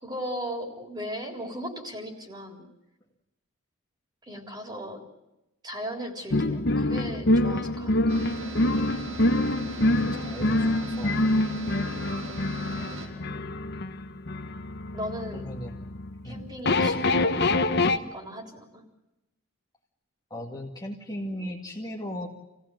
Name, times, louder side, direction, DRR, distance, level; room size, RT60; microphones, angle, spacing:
voice 1, 0.0-2.7 4.3-5.0 5.6-8.2 14.9-15.5 16.2-18.8, equal, 20° right, 3 dB, 3.8 m, -37 dB
sound 1, 6.3-18.0, left 2 dB, 50° left, 1.0 m, -26 dB
sound 2, 8.1-13.1, right 2 dB, 70° right, 5.0 m, -39 dB
voice 2, 9.8-11.2 12.7-13.5 15.3-15.8 16.2-16.5 20.3-22.3, equal, 20° left, -1 dB, 2.1 m, -38 dB
28.5 x 17.0 x 9.3 m, 0.98 s
head